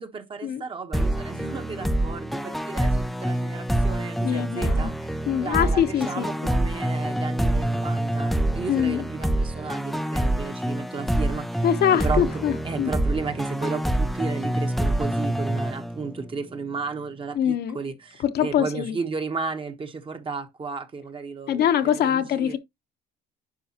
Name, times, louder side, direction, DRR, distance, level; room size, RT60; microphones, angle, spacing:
voice 1, 0.0-11.7 11.9-22.6, right 4 dB, 25° right, 1.1 m, -34 dB
sound 1, 0.9-16.4, right 1 dB, ahead, 0.4 m, -26 dB
voice 2, 4.2-4.9 5.3-6.3 8.7-9.0 11.6-12.9 17.4-17.8 18.3-19.0 21.5-22.6, left 9 dB, 55° left, 1.0 m, -23 dB
9.9 x 5.5 x 2.9 m
cardioid pair, 130°, 20 cm